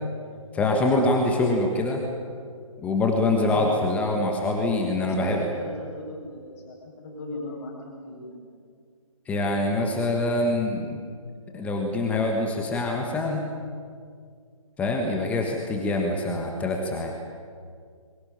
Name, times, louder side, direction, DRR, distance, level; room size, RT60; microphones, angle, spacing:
voice 1, 0.5-2.0 2.8-5.4 9.3-11.0 11.5-13.4 14.8-17.1, left 2 dB, 5° left, 1 dB, 1.4 m, -24 dB
voice 2, 3.4-3.9 5.0-8.4, left 2 dB, 25° left, -3 dB, 7.9 m, -38 dB
23.0 x 17.0 x 9.9 m, 2.1 s
figure-of-eight pair, 145°, 18 cm